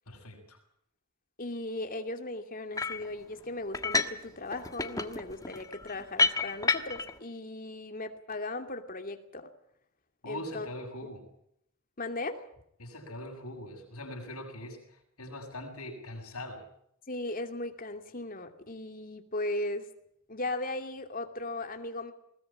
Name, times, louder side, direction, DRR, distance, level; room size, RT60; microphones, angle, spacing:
voice 1, 0.1-0.6 10.2-11.3 12.8-16.6, left 1 dB, 90° left, 1 dB, 7.2 m, -42 dB
voice 2, 1.4-9.5 10.2-10.7 12.0-12.5 17.1-19.9 20.3-22.1, left 2 dB, 40° left, 6 dB, 2.6 m, -37 dB
sound 1, 2.8-3.1 3.7-4.2 4.5-7.1, left 3 dB, 15° left, 1.5 m, -29 dB
21.0 x 19.5 x 8.8 m, 0.71 s
head